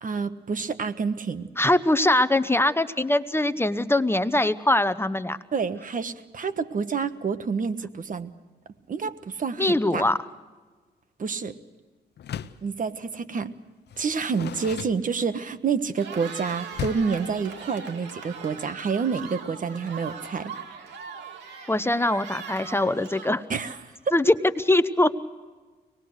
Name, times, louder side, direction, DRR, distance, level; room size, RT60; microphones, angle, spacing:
voice 1, 0.0-1.5 5.5-8.3 8.9-10.0 11.2-11.5 12.6-13.5 14.0-20.5 23.5-23.7 24.0-24.1, right 5 dB, 50° right, 11 dB, 1.4 m, -28 dB
voice 2, 1.6-5.4 9.6-10.2 21.7-23.4 24.1-25.1, left 1 dB, 15° left, 12 dB, 0.9 m, -22 dB
Door, 12.2-12.7 13.9-15.6 16.7-17.2, left 9 dB, 70° left, 0.8 m, -36 dB
Cheering, 15.8-24.1, right 5 dB, 85° right, 2.9 m, -40 dB
25.0 x 20.0 x 6.5 m, 1.4 s
cardioid pair, 75°, 18 cm